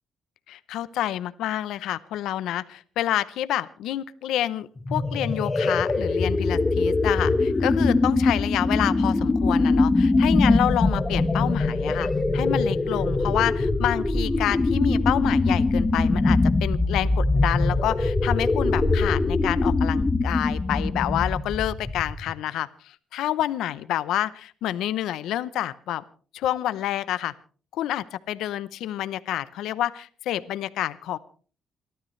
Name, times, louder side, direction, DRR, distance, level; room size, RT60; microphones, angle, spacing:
voice 1, 0.5-26.0 26.3-27.3 27.7-31.2, left 12 dB, 85° left, 15 dB, 0.7 m, -28 dB
sound 1, 4.8-22.3, left 2 dB, 20° left, 1.3 m, -22 dB
28.0 x 13.0 x 3.2 m, 0.40 s
cardioid pair, 90°, 0 cm